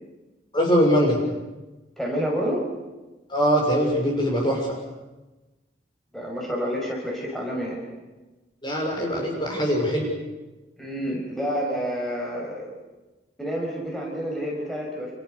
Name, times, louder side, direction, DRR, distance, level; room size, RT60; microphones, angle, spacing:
voice 1, 0.5-1.2 3.3-4.7 8.6-10.1, equal, 25° left, 0 dB, 6.6 m, -22 dB
voice 2, 2.0-2.6 6.1-7.8 10.8-12.7 13.4-15.1, equal, ahead, -2 dB, 6.6 m, -29 dB
29.5 x 29.0 x 6.9 m, 1.1 s
head